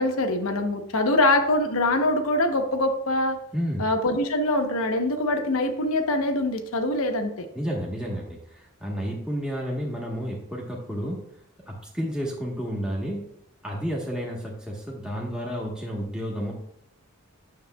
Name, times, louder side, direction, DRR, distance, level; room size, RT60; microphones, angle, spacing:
voice 1, 0.0-3.4 3.8-7.5, left 1 dB, 70° left, 6 dB, 0.9 m, -24 dB
voice 2, 3.5-3.8 7.5-11.3 11.7-13.3 13.6-16.5, equal, 5° right, -3 dB, 1.1 m, -31 dB
9.5 x 6.8 x 2.2 m, 0.73 s
head